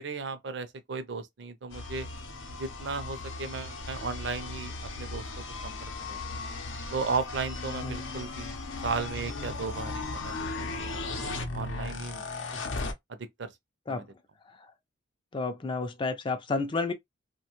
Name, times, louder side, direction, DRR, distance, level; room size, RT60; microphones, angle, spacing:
voice 1, 0.0-2.1 2.6-5.2 5.6-5.8 6.1-6.4 6.9-11.0 11.5-12.3 13.1-13.5 13.9-14.0, right 4 dB, 60° right, 0.5 m, -35 dB
sound 1, 1.7-12.9, left 3 dB, 75° left, 0.6 m, -37 dB
voice 2, 15.3-16.9, left 3 dB, 25° left, 0.4 m, -31 dB
2.6 x 2.2 x 2.9 m
head